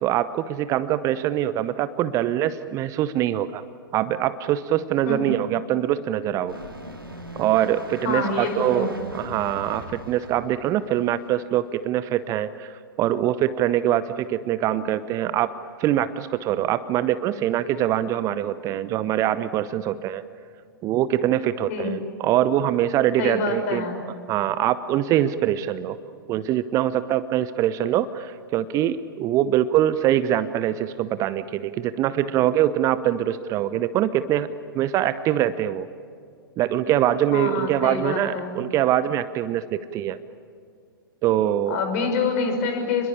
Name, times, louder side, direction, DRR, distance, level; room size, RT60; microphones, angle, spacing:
voice 1, 0.0-3.6 3.9-6.6 7.4-15.5 15.8-20.2 20.8-23.8 24.3-26.0 26.3-34.5 34.7-35.9 36.6-40.2 41.2-41.8, right 12 dB, 25° right, 14 dB, 0.8 m, -23 dB
sound 1, 6.5-11.3 11.8-11.9, equal, 90° right, 3.1 m, -40 dB
voice 2, 8.0-9.0 21.7-22.0 23.2-24.0 37.3-38.6 41.7-43.1, left 4 dB, 45° left, 5 dB, 5.9 m, -26 dB
29.0 x 22.0 x 8.6 m, 2.3 s
figure-of-eight pair, 105°, 12 cm